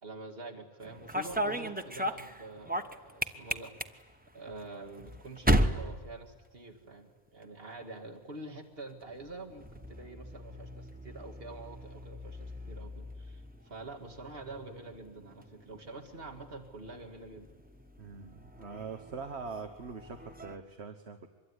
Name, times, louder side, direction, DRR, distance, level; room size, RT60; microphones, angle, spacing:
voice 1, 0.0-3.8 4.3-17.5, right 2 dB, 65° right, 5 dB, 2.4 m, -46 dB
sound 1, 0.8-7.0 7.3-7.8 8.9-20.6, equal, 10° right, 1.0 m, -37 dB
voice 2, 18.0-21.3, right 5 dB, 80° right, 7 dB, 1.6 m, -43 dB
25.0 x 22.0 x 9.8 m, 1.3 s
omnidirectional pair, 1.1 m